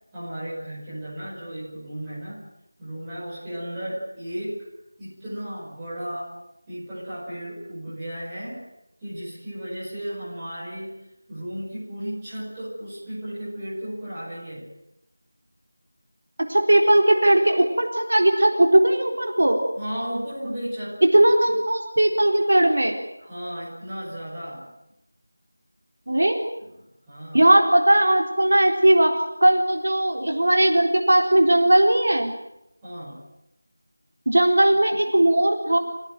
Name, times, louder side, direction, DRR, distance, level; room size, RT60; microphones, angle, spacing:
voice 1, 0.1-2.5 2.8-4.7 5.0-6.3 6.7-8.6 9.0-11.0 11.3-14.7 19.7-21.0 23.2-24.7 26.6-27.5 32.8-33.2, equal, 5° right, -10 dB, 5.6 m, -34 dB
voice 2, 16.5-19.6 21.1-23.0 26.1-26.4 27.3-32.3 34.3-35.8, right 1 dB, 55° right, 2 dB, 4.0 m, -18 dB
28.5 x 18.0 x 9.2 m, 0.85 s
figure-of-eight pair, 180°, 0 cm